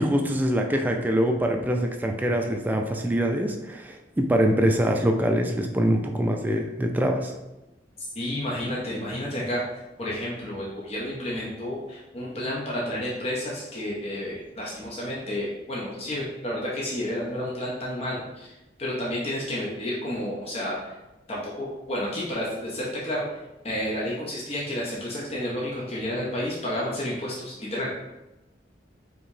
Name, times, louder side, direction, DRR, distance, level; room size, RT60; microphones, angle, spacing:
voice 1, 0.0-7.3, equal, 10° right, 2 dB, 0.4 m, -24 dB
voice 2, 8.2-9.6 10.0-20.9 21.3-23.3 23.6-28.1, left 1 dB, 35° left, -5 dB, 0.7 m, -31 dB
4.5 x 2.9 x 2.7 m, 1.0 s
head